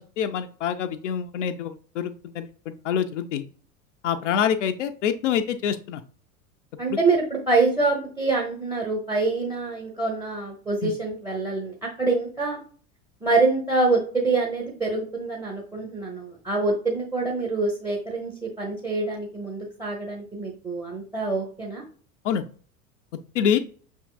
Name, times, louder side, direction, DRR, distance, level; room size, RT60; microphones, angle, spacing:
voice 1, 0.0-3.5 4.0-6.0 6.9-7.0 10.8-10.9 22.2-22.4 23.3-23.6, left 8 dB, 60° left, 7 dB, 0.5 m, -26 dB
voice 2, 6.8-12.6 13.2-21.8, right 3 dB, 5° right, 2 dB, 0.7 m, -25 dB
5.7 x 3.5 x 2.3 m, 0.43 s
figure-of-eight pair, 80°, 43 cm